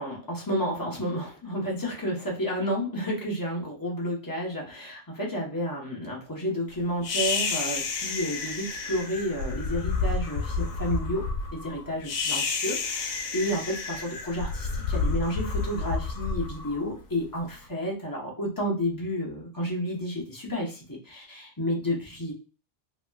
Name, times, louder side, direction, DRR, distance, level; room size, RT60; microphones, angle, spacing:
voice 1, 0.0-11.2 11.5-22.3, equal, 20° left, -3 dB, 0.7 m, -31 dB
sound 1, 7.0-17.4, left 4 dB, 85° left, 0.9 m, -30 dB
2.9 x 2.8 x 2.2 m, 0.35 s
omnidirectional pair, 1.2 m